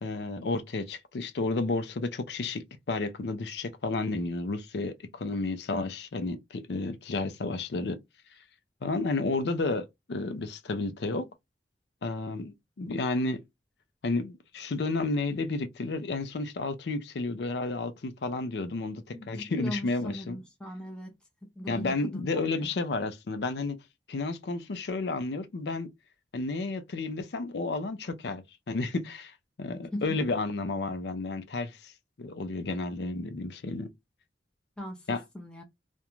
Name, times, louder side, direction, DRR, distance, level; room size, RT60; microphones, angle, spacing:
voice 1, 0.0-8.0 8.8-11.3 12.0-13.4 14.0-20.4 21.7-23.8 24.1-25.9 26.3-31.9 32.2-33.9 35.1-35.2, left 3 dB, 65° left, 0.5 m, -32 dB
voice 2, 19.1-21.1 21.4-22.3 22.6-22.7 29.9-30.2 34.8-35.0 35.3-35.6, left 1 dB, 5° left, 0.5 m, -39 dB
2.5 x 2.1 x 2.9 m
head